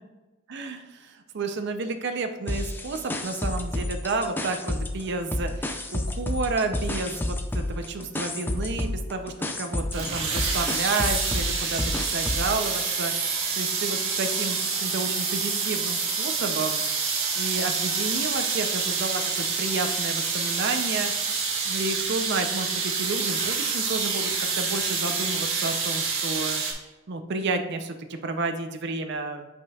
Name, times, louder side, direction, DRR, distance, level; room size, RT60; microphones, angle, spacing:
voice 1, 0.5-11.8 12.1-13.1 13.5-16.8 17.4-21.1 21.6-26.6 27.1-29.5, right 3 dB, 55° right, 6 dB, 0.5 m, -31 dB
sound 1, 2.5-5.0 5.3-12.6, left 1 dB, 10° left, 0.4 m, -30 dB
sound 2, 9.9-26.7, right 5 dB, 85° right, 1.4 m, -27 dB
8.1 x 5.1 x 2.3 m, 1.2 s
head